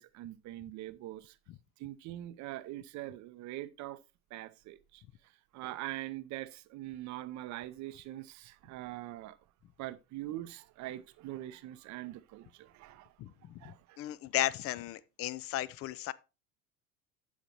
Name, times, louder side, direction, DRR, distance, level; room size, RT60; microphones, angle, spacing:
voice 1, 0.0-1.4 1.8-4.0 4.3-9.4 9.8-13.1 13.6-14.2, right 15 dB, 40° right, 0.7 m, -43 dB
voice 2, 13.2-13.6 14.0-16.1, left 14 dB, 35° left, 0.4 m, -35 dB
14.5 x 4.9 x 2.9 m
hypercardioid pair, 75°, 43 cm